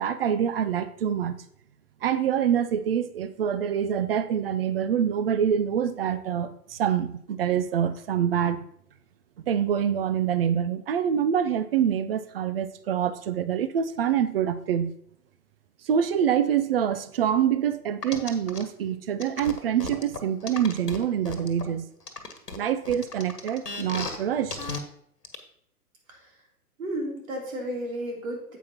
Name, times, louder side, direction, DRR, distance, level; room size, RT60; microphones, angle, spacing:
voice 1, 0.0-1.3 2.0-8.6 9.5-14.9 15.8-21.9 22.5-24.6, right 9 dB, 40° right, 12 dB, 0.6 m, -25 dB
sound 1, 18.0-18.6 19.2-21.6 22.1-24.2 24.5-24.8 25.2-25.4, left 3 dB, 85° left, 1.4 m, -35 dB
voice 2, 26.8-28.6, right 1 dB, 60° right, 0 dB, 3.3 m, -33 dB
9.2 x 8.1 x 2.9 m, 0.68 s
figure-of-eight pair, 120°, 46 cm